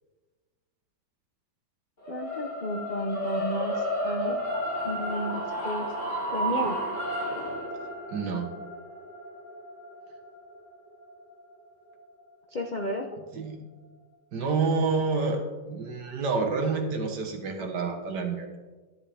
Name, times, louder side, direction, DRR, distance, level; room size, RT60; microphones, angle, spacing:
sound 1, 2.0-12.2, equal, 25° left, 3.0 m, -32 dB
voice 1, 2.1-4.4 4.8-5.9 6.3-6.8 12.5-13.1, equal, 70° left, 2 dB, 0.4 m, -32 dB
voice 2, 8.1-8.5 13.3-13.6 14.3-18.5, right 4 dB, 65° right, 3 dB, 1.9 m, -28 dB
11.5 x 10.5 x 3.4 m, 1.3 s
omnidirectional pair, 2.0 m